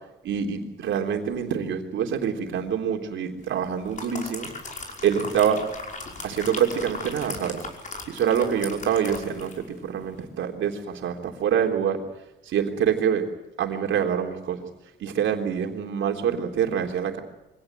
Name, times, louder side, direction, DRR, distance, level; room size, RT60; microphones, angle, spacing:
voice 1, 0.2-4.5 5.0-5.6 6.2-7.6 8.1-12.0 12.4-13.3 13.6-14.6 15.0-17.2, right 8 dB, 75° right, 4 dB, 3.6 m, -26 dB
sound 1, 3.6-9.7 10.0-10.2, left 3 dB, 40° left, 5.6 m, -38 dB
24.5 x 18.0 x 9.4 m, 0.96 s
cardioid pair, 90°, 20 cm